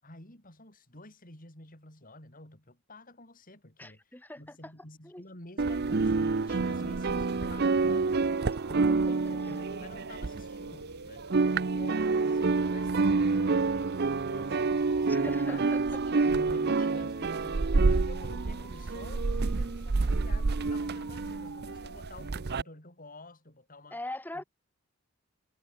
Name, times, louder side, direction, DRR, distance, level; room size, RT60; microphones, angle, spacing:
voice 1, 0.0-8.1 8.7-11.2 11.7-24.0 24.3-24.4, left 1 dB, 40° left, 6.6 m, -50 dB
voice 2, 3.8-4.7 5.0-5.2 8.9-9.2 15.1-16.0 23.9-24.4, left 1 dB, 10° left, 4.4 m, -42 dB
sound 1, 5.6-10.9 11.2-22.6, right 3 dB, 50° right, 0.6 m, -28 dB
sound 2, 8.1-22.8, right 3 dB, 90° right, 7.8 m, -49 dB
head